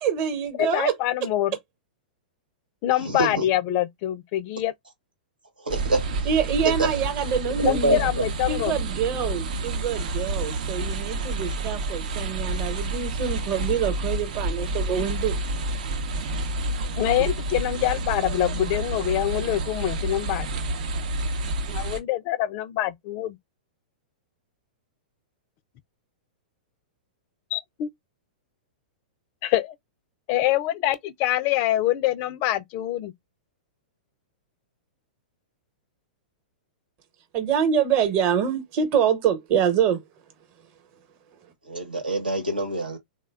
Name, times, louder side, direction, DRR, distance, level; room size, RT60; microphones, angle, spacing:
voice 1, 0.0-0.9 6.2-8.0 8.5-15.4 37.3-40.0, right 8 dB, 40° right, 0.9 m, -25 dB
voice 2, 0.6-1.6 2.8-4.7 7.6-8.8 17.0-20.5 21.7-23.4 27.5-27.9 29.4-29.7 30.3-33.1, left 13 dB, 40° left, 0.3 m, -25 dB
voice 3, 3.0-3.4 5.6-6.3 6.6-6.9 7.5-8.0 41.7-43.0, right 2 dB, 85° right, 1.1 m, -25 dB
sound 1, 5.7-22.0, right 2 dB, 60° right, 0.6 m, -29 dB
3.2 x 2.1 x 2.2 m
figure-of-eight pair, 105°, 5 cm